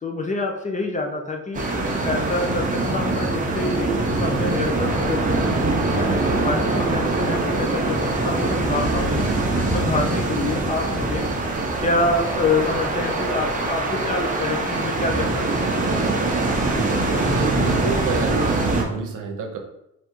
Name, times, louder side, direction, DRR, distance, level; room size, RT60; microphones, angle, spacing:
voice 1, 0.0-5.5 5.9-11.3 11.8-15.7, left 2 dB, 25° left, 2 dB, 0.6 m, -27 dB
sound 1, 1.5-18.8, right 2 dB, 25° right, 0.8 m, -23 dB
voice 2, 17.2-19.6, right 5 dB, 80° right, 3 dB, 0.8 m, -29 dB
3.4 x 2.6 x 4.5 m, 0.83 s
cardioid pair, 130°, 31 cm